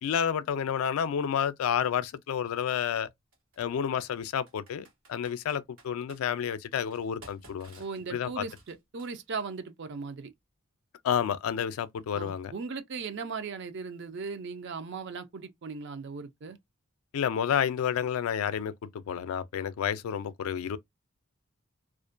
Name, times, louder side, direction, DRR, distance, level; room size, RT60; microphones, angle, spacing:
voice 1, 0.0-3.1 3.6-7.8 8.1-8.4 11.0-12.5 17.1-20.8, left 8 dB, 80° left, 0.3 m, -30 dB
Computer keyboard, 1.7-1.8 3.3-3.6 4.5-6.2 6.8-9.5, right 2 dB, 75° right, 1.2 m, -55 dB
voice 2, 7.8-10.3 12.1-16.6, right 4 dB, 55° right, 0.4 m, -38 dB
2.4 x 2.1 x 2.4 m
head